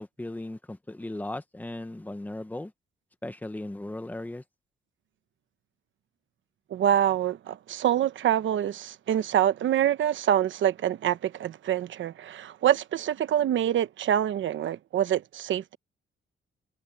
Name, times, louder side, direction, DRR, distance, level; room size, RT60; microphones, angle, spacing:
voice 1, 0.0-2.7 3.2-4.4, left 1 dB, 10° left, 1.0 m, -37 dB
voice 2, 6.7-15.8, right 10 dB, 70° right, 1.0 m, -26 dB
wide cardioid pair, 175°, 21 cm